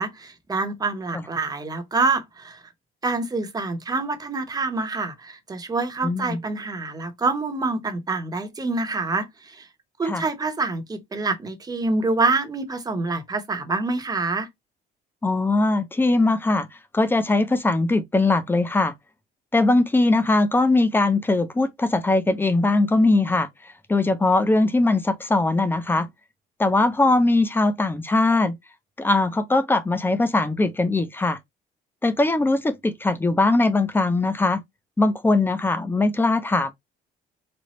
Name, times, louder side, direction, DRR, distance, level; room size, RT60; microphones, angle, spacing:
voice 1, 0.0-2.6 3.0-9.7 10.0-14.5, right 3 dB, 20° right, 0.9 m, -26 dB
voice 2, 6.0-6.4 10.0-10.2 15.2-16.7 16.9-18.9 19.5-23.5 23.9-26.1 26.6-28.6 29.0-31.4 32.0-34.6 35.0-36.7, left 2 dB, 10° left, 0.6 m, -20 dB
4.3 x 2.2 x 3.0 m
cardioid pair, 110°, 17 cm